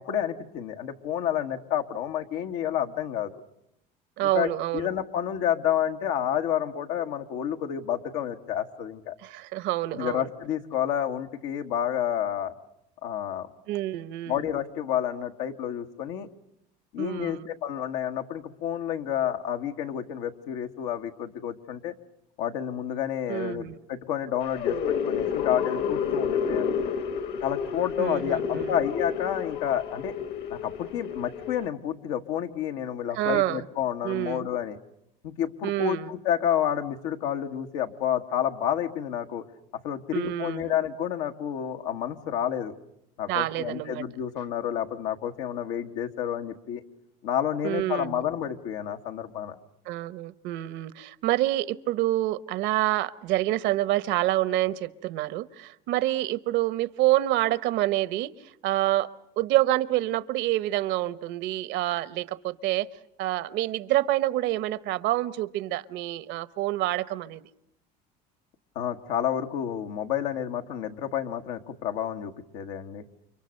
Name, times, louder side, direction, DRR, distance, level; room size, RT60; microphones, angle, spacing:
voice 1, 0.0-3.3 4.2-9.2 9.9-12.5 13.0-13.5 14.3-16.3 16.9-21.9 22.4-26.7 27.4-30.1 30.5-34.8 35.2-39.5 39.8-42.7 43.2-46.8 47.2-49.6 68.8-73.1, left 10 dB, 85° left, 5 dB, 1.7 m, -30 dB
voice 2, 4.2-4.9 9.2-10.3 13.7-14.5 17.0-17.5 23.3-23.8 28.0-28.8 33.2-33.6 34.0-34.5 35.6-36.1 40.1-40.7 43.3-44.0 47.6-48.2 49.9-58.3 58.6-62.9 63.2-67.4, right 15 dB, 70° right, 16 dB, 1.0 m, -27 dB
sound 1, 24.4-31.7, left 7 dB, 55° left, 1.5 m, -30 dB
30.0 x 25.0 x 6.6 m, 0.82 s
supercardioid pair, 105°, 20 cm